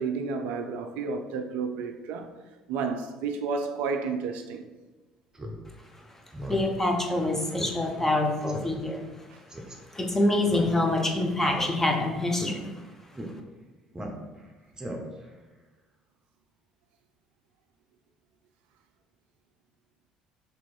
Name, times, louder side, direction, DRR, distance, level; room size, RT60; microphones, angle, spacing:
voice 1, 0.0-2.3 2.7-4.7 9.3-9.4, right 5 dB, 65° right, 0.3 m, -31 dB
Speech synthesizer, 5.3-5.6 5.9-6.0 6.3-6.7 7.0-7.1 7.6-7.7 8.0-8.1 8.5-8.7 9.5-9.7 10.4-11.0 11.4-12.0 12.3-12.5 13.1-13.3 13.9-14.4 14.7-15.3, right 1 dB, 20° right, 0.8 m, -37 dB
voice 2, 6.5-9.0 9.9-12.7, left 2 dB, 15° left, 0.8 m, -26 dB
3.5 x 3.0 x 4.2 m
figure-of-eight pair, 55°, 3 cm